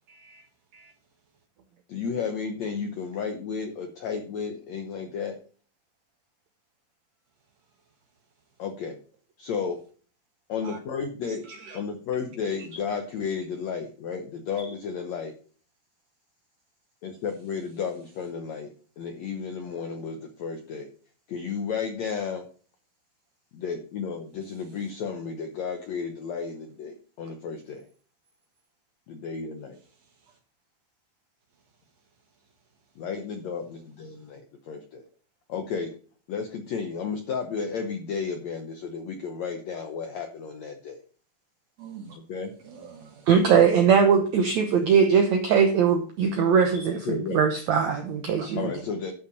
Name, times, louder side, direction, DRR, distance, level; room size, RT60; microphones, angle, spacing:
voice 1, 0.1-0.4 0.7-0.9 10.6-10.8 11.5-11.8 41.8-42.2 42.6-43.3 48.4-48.5, right 5 dB, 55° right, 3 dB, 2.1 m, -44 dB
voice 2, 1.9-5.4 8.6-9.0 9.4-9.8 10.5-11.4 11.7-15.3 17.0-18.7 19.0-20.9 21.3-22.5 23.5-27.8 29.1-29.8 33.0-35.0 35.5-35.9 36.3-41.0 42.3-42.5 47.1-47.4 48.5-49.1, left 6 dB, 75° left, 5 dB, 1.6 m, -33 dB
voice 3, 43.3-48.6, right 6 dB, 75° right, 6 dB, 1.7 m, -21 dB
11.5 x 5.7 x 5.2 m, 0.42 s
omnidirectional pair, 4.5 m